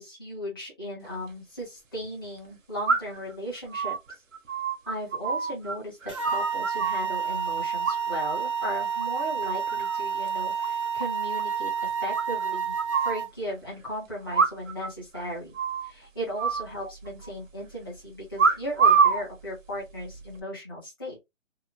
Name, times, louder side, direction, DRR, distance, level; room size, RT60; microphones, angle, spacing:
voice 1, 0.0-4.0 4.9-15.5 15.8-21.2, equal, 20° left, 0.8 m, -36 dB
sound 1, 1.1-1.2 2.9-3.3 3.7-5.8 6.0-7.1 7.8-8.4 8.7-9.0 9.4-10.0 10.3-10.4 10.6-10.7 11.0-11.1 11.4-11.5 12.2-13.2 14.3-14.9 15.1-15.2 15.6-15.9 16.4-17.3 18.4-19.2 20.0-20.3, right 5 dB, 75° right, 0.9 m, -25 dB
sound 2, 6.1-13.3, right 7 dB, 25° right, 0.6 m, -29 dB
2.8 x 2.0 x 2.6 m
hypercardioid pair, 180°, 39 cm